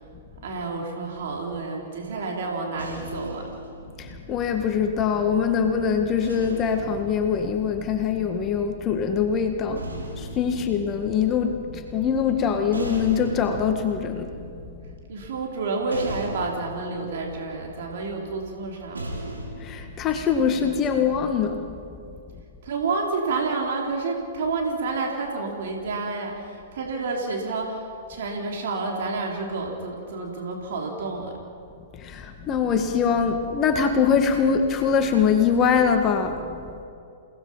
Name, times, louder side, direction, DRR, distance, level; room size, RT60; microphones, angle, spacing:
voice 1, 0.4-3.4 15.1-19.1 22.6-27.8 28.1-31.3, right 3 dB, 60° right, 0 dB, 4.0 m, -29 dB
sound 1, 2.0-5.3 6.2-8.5 9.4-20.5, right 1 dB, 85° right, 5.1 m, -39 dB
voice 2, 4.0-9.8 10.2-11.6 11.9-14.3 19.7-21.6 32.0-36.4, left 6 dB, 30° left, 5 dB, 1.8 m, -23 dB
29.5 x 18.5 x 5.7 m, 2.5 s
figure-of-eight pair, 110°, 0 cm